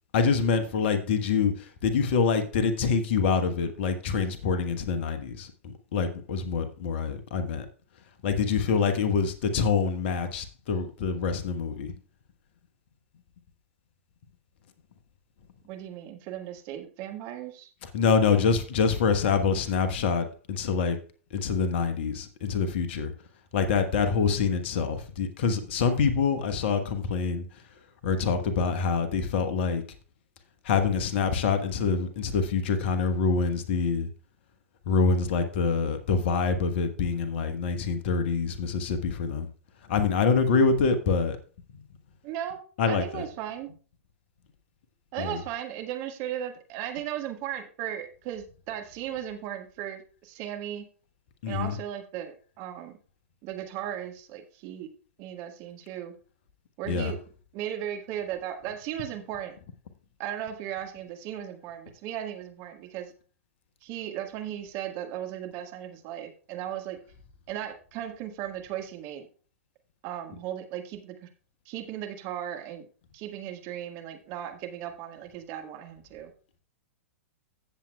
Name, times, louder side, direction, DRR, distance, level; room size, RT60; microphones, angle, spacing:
voice 1, 0.1-1.5 1.8-5.5 5.9-7.6 8.2-11.9 17.9-21.0 21.3-23.1 23.5-27.4 28.0-29.8 30.7-34.1 34.9-39.5 39.9-41.4 42.8-43.2 45.2-45.4 51.4-51.7 56.9-57.1, left 5 dB, 50° left, 9 dB, 1.3 m, -25 dB
voice 2, 15.6-17.7 42.2-43.7 45.1-50.8 51.5-53.0 53.4-54.9 55.2-56.1 56.8-57.2 57.5-59.6 60.2-63.1 63.8-67.0 67.5-69.3 70.0-71.3 71.6-72.8 73.1-76.3, right 11 dB, 40° right, 4 dB, 1.6 m, -36 dB
15.5 x 7.5 x 2.3 m, 0.38 s
figure-of-eight pair, 100°, 8 cm